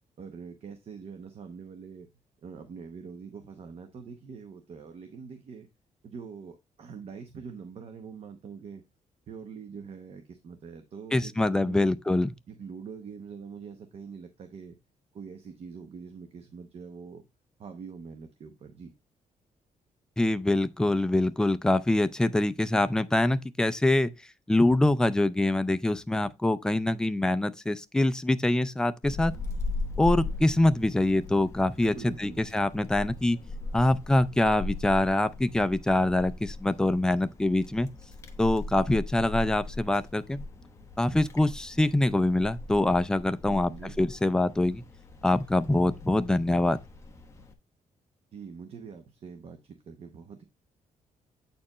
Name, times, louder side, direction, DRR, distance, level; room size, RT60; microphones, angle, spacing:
voice 1, 0.2-2.1 2.4-5.7 6.0-8.8 9.3-11.9 12.5-14.8 15.1-17.2 17.6-18.9 31.9-32.4 43.4-44.0 48.3-50.4, right 6 dB, 45° right, 0.9 m, -44 dB
voice 2, 11.1-12.3 20.2-24.1 24.5-29.3 30.0-33.4 33.7-37.9 38.4-40.4 41.0-43.7 44.0-44.8 45.2-46.8, left 1 dB, 5° left, 0.3 m, -24 dB
Wind, 29.0-47.5, left 2 dB, 20° left, 1.0 m, -39 dB
8.4 x 4.4 x 3.0 m
cardioid pair, 160°, 14 cm